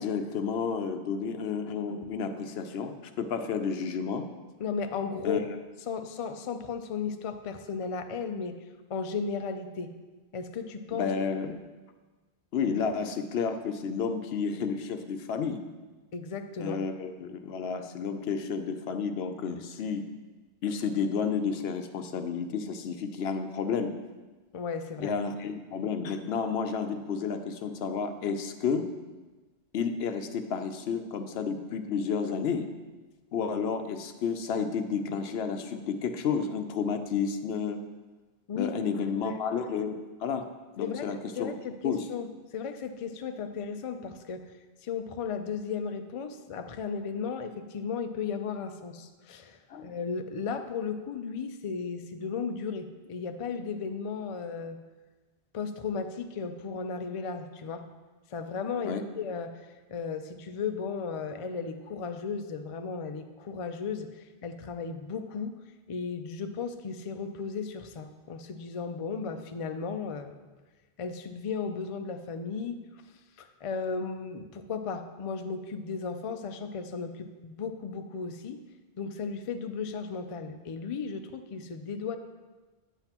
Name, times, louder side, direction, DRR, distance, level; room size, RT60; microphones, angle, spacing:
voice 1, 0.0-4.3 5.2-5.4 10.9-11.6 12.5-15.7 16.6-20.1 20.6-24.0 25.0-28.9 29.7-32.7 33.3-37.8 38.6-40.5 40.8-41.5 41.8-42.1 49.7-49.9 58.8-59.1, left 6 dB, 75° left, 8 dB, 0.8 m, -31 dB
voice 2, 4.6-5.5 5.9-8.6 8.9-9.9 10.3-11.1 11.4-11.5 16.1-16.8 24.5-25.1 38.5-38.7 39.2-39.4 40.8-41.1 41.4-44.6 44.8-54.8 55.5-57.9 58.3-65.5 65.9-70.3 71.0-72.8 73.1-78.6 79.0-82.2, left 5 dB, 55° left, 7 dB, 0.4 m, -35 dB
8.9 x 7.8 x 2.9 m, 1.3 s
omnidirectional pair, 1.1 m